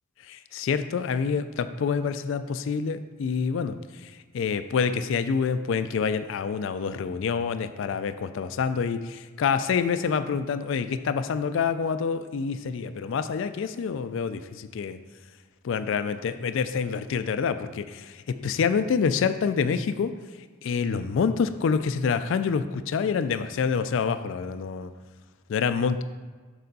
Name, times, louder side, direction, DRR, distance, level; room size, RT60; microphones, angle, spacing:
voice 1, 0.3-3.8 4.0-15.0 15.6-20.1 20.6-24.9 25.5-26.0, left 6 dB, 60° left, 10 dB, 0.3 m, -27 dB
6.7 x 6.2 x 4.0 m, 1.5 s
head